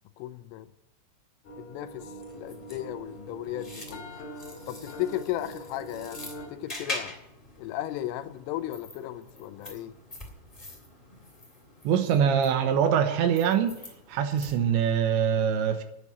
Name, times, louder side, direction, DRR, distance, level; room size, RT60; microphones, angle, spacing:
voice 1, 0.2-0.7 1.6-2.1 2.3-4.1 4.7-7.1 7.6-9.9, left 13 dB, 85° left, 3.3 m, -35 dB
sound 1, 1.4-6.5, right 1 dB, 45° left, 2.9 m, -43 dB
sound 2, 2.2-14.9, left 2 dB, 10° left, 1.7 m, -44 dB
voice 2, 11.8-13.8 14.1-15.8, right 8 dB, 75° right, 3.2 m, -24 dB
9.9 x 9.7 x 9.1 m
omnidirectional pair, 5.7 m